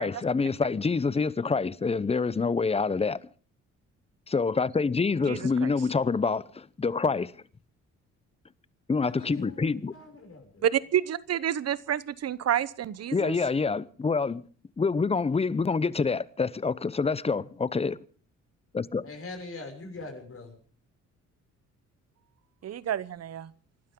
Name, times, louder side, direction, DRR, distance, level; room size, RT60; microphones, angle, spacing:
voice 1, 0.0-3.2 4.3-7.3 8.9-9.9 13.1-14.4 14.8-18.0 18.7-19.0, left 4 dB, 20° left, 0.7 m, -26 dB
voice 2, 5.2-5.7 10.6-13.3 22.6-23.5, right 10 dB, 55° right, 0.9 m, -29 dB
voice 3, 9.0-10.6 19.0-20.6, left 3 dB, 45° left, 6.5 m, -43 dB
29.0 x 12.5 x 3.8 m
cardioid pair, 90°, 30 cm